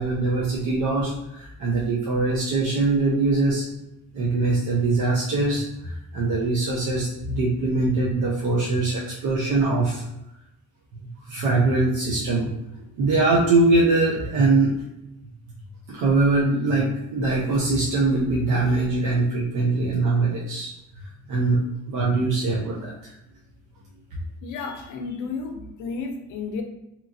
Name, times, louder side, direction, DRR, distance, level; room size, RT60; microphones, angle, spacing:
voice 1, 0.0-3.6 4.1-10.0 11.3-12.5 13.0-14.7 15.9-20.7 21.3-23.1, right 3 dB, 80° right, -4 dB, 0.6 m, -22 dB
voice 2, 24.4-26.6, left 4 dB, 85° left, 4 dB, 0.6 m, -32 dB
2.9 x 2.4 x 2.4 m, 0.88 s
cardioid pair, 90°, 30 cm